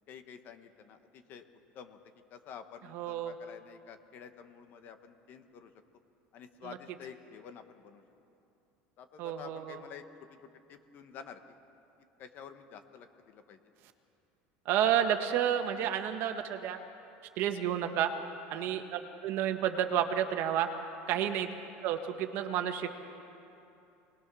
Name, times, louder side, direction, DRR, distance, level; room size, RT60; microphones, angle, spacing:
voice 1, 0.1-1.4 1.7-2.0 2.3-5.7 6.3-8.0 9.0-10.0 10.4-11.4 12.2-13.6 18.5-18.7 21.1-21.3, left 7 dB, 45° left, 8 dB, 1.3 m, -50 dB
voice 2, 2.9-3.3 6.6-6.8 9.2-9.8 14.6-16.8 17.4-18.1 18.5-20.7 21.1-21.5 21.8-23.0, right 10 dB, 50° right, 6 dB, 1.4 m, -30 dB
24.5 x 20.0 x 6.2 m, 2.8 s
cardioid pair, 155°, 5 cm